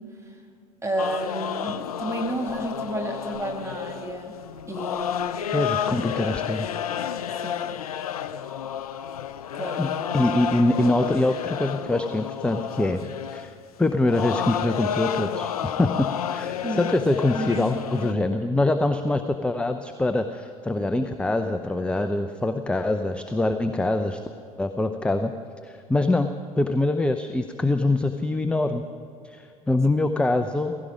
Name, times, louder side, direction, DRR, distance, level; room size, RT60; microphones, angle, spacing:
voice 1, 0.8-4.3 4.7-5.5 7.4-7.8 9.5-10.0 16.6-17.0 17.3-18.2, right 1 dB, 15° right, 2 dB, 2.5 m, -32 dB
sound 1, 1.0-18.1, left 9 dB, 75° left, 0.5 m, -31 dB
voice 2, 5.5-6.7 9.8-13.0 13.3-13.5 13.8-24.2 24.6-25.3 25.6-28.8 29.2-30.9, left 2 dB, 5° left, 8 dB, 0.7 m, -24 dB
16.5 x 16.5 x 5.1 m, 2.6 s
figure-of-eight pair, 65°, 19 cm